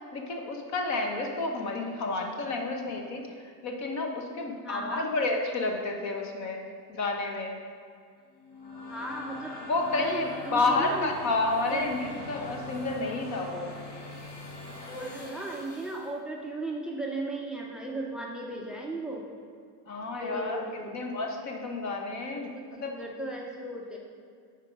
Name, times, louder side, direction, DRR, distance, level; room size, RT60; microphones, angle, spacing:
voice 1, 0.1-3.3 3.6-6.6 6.9-7.6 9.7-13.7 19.9-20.6 20.9-22.5 22.8-23.0, left 3 dB, 35° left, 2 dB, 1.0 m, -30 dB
voice 2, 4.6-5.1 8.9-9.5 10.0-11.1 11.7-11.9 14.9-19.2 20.2-21.0 22.3-24.0, right 2 dB, ahead, -1 dB, 0.4 m, -36 dB
sound 1, 8.3-16.1, left 2 dB, 80° left, 1.8 m, -42 dB
6.8 x 4.5 x 5.1 m, 2.2 s
supercardioid pair, 130°, 48 cm